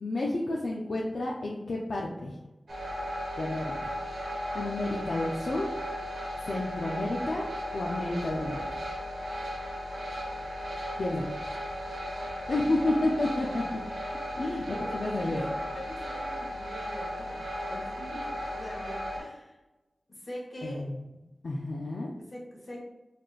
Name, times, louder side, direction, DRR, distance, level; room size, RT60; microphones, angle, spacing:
voice 1, 0.0-2.4 3.4-3.9 4.5-5.7 6.4-7.4 7.7-8.6 11.0-11.2 12.5-13.6 14.4-15.4 20.6-21.0 21.4-22.1, left 2 dB, 70° left, -2 dB, 0.4 m, -30 dB
sound 1, 2.7-19.2, equal, 85° right, 1.0 m, -36 dB
voice 2, 12.8-13.1 14.9-17.4 17.7-18.2 18.5-19.6 20.2-20.9 22.2-22.8, equal, 55° left, -3 dB, 1.2 m, -42 dB
4.1 x 3.2 x 2.4 m, 1.0 s
wide cardioid pair, 65°, 0 cm